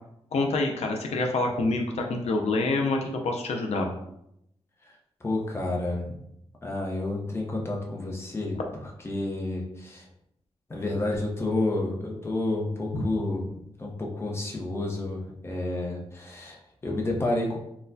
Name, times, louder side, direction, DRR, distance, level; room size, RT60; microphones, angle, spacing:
voice 1, 0.3-3.9 12.9-13.0, left 2 dB, 85° left, 2 dB, 0.5 m, -26 dB
voice 2, 5.2-6.2 6.6-8.6 9.0-10.1 10.7-17.6, left 2 dB, 25° left, -1 dB, 0.7 m, -30 dB
4.2 x 2.2 x 2.6 m, 0.78 s
wide cardioid pair, 120°, 11 cm